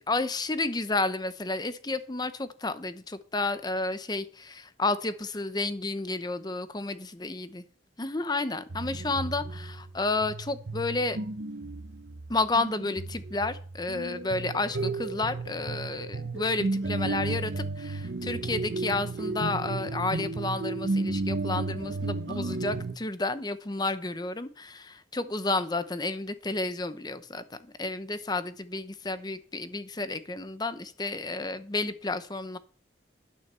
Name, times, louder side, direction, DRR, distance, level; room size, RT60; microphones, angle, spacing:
voice 1, 0.0-7.6 8.0-11.2 12.3-32.6, left 2 dB, 25° left, 12 dB, 0.8 m, -31 dB
sound 1, 8.7-23.0, right 3 dB, 75° right, 0.9 m, -33 dB
12.0 x 6.5 x 6.8 m, 0.43 s
head